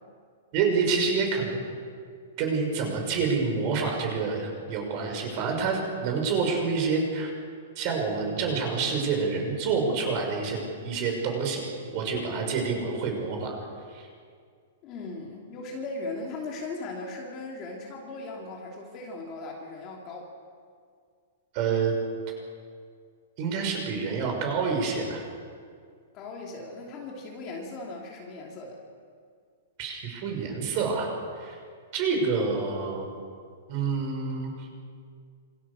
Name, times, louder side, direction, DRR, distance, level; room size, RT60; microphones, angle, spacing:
voice 1, 0.5-1.6 2.4-7.3 7.8-11.7 11.9-13.6 13.9-14.1 21.5-21.9 23.4-25.2 29.8-31.1 31.4-31.6 31.9-33.1 33.7-34.7, right 5 dB, 30° right, 2 dB, 6.1 m, -27 dB
voice 2, 14.8-20.3 26.1-28.8, left 3 dB, 20° left, -1 dB, 2.9 m, -38 dB
27.5 x 26.5 x 7.0 m, 2.1 s
hypercardioid pair, 180°, 0 cm